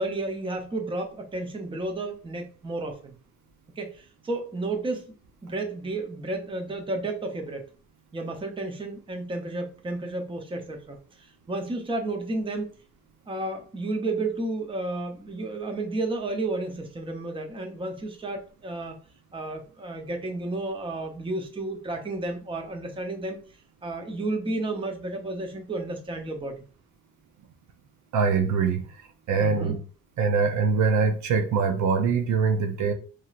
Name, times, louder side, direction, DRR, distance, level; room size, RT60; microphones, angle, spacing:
voice 1, 0.0-3.1 3.8-5.0 5.4-7.6 8.1-11.0 11.5-12.7 13.3-19.0 19.3-23.4 23.8-26.6 29.4-29.8, right 2 dB, 15° right, 4 dB, 0.6 m, -32 dB
voice 2, 28.1-28.8 29.3-29.8 30.2-32.9, right 5 dB, 70° right, 5 dB, 0.7 m, -23 dB
3.0 x 2.7 x 2.4 m, 0.37 s
cardioid pair, 90°, 30 cm